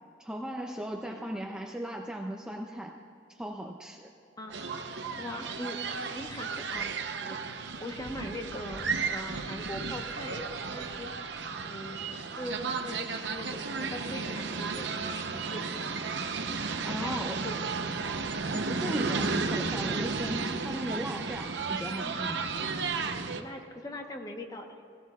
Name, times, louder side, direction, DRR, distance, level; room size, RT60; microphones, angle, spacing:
voice 1, 0.2-2.9 3.3-4.1 16.8-17.4 18.5-22.7, right 1 dB, 5° right, 1 dB, 0.5 m, -37 dB
voice 2, 4.4-6.9 7.2-11.1 11.6-15.7 16.9-17.6 23.3-24.8, left 1 dB, 20° left, 3 dB, 1.0 m, -41 dB
sound 1, 4.5-23.4, right 4 dB, 75° right, 0.8 m, -33 dB
17.5 x 17.0 x 2.4 m, 2.6 s
head